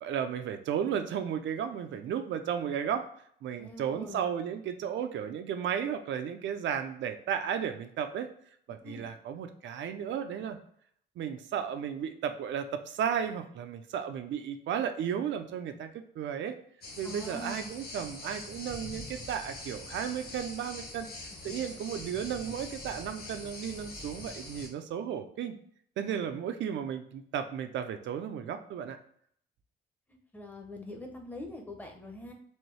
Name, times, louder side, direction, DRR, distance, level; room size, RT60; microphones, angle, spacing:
voice 1, 0.0-3.1 3.4-8.3 8.7-10.6 11.2-15.9 16.2-16.6 17.0-21.1 21.4-25.5 26.0-29.0, right 8 dB, 75° right, 8 dB, 0.5 m, -34 dB
voice 2, 3.6-4.3 8.8-9.1 17.0-17.8 21.4-21.7 30.3-32.3, equal, 10° left, 2 dB, 0.6 m, -43 dB
sound 1, 16.8-24.7, left 2 dB, 55° left, 1.2 m, -43 dB
4.4 x 2.7 x 3.1 m, 0.64 s
wide cardioid pair, 180°, 19 cm